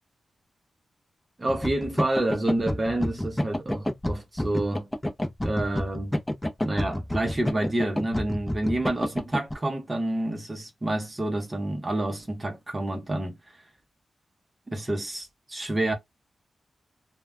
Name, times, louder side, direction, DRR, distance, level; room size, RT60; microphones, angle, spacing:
voice 1, 1.4-4.9 5.4-6.1 6.6-13.3 14.7-15.9, right 1 dB, 25° right, 0.7 m, -28 dB
sound 1, 1.5-9.5, left 1 dB, 10° left, 0.6 m, -29 dB
2.2 x 2.1 x 3.5 m
wide cardioid pair, 100°, 0 cm